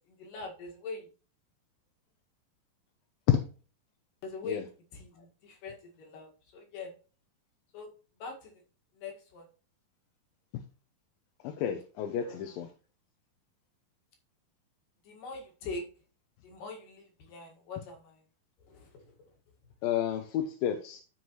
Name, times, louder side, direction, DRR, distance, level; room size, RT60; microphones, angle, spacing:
voice 1, 0.1-1.1 4.2-4.6 4.9-6.9 7.7-7.9 8.2-8.6 8.9-9.5 12.2-12.5 15.0-15.9 16.4-18.2 18.6-19.1, left 3 dB, 70° left, 1 dB, 3.5 m, -43 dB
voice 2, 11.4-12.7 19.8-21.0, left 10 dB, 85° left, 5 dB, 2.5 m, -30 dB
12.5 x 4.7 x 3.1 m, 0.36 s
omnidirectional pair, 4.0 m